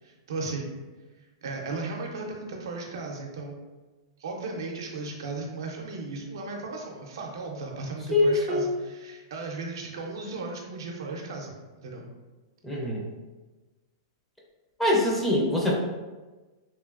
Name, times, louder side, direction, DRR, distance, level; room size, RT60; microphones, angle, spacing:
voice 1, 0.0-0.7 1.4-3.6 4.2-11.5 11.8-12.0, right 3 dB, 80° right, 1 dB, 0.6 m, -36 dB
voice 2, 8.1-8.7 12.6-13.1 14.8-15.7, left 2 dB, 5° left, -4 dB, 0.4 m, -23 dB
3.0 x 2.5 x 2.4 m, 1.2 s
supercardioid pair, 150°, 2 cm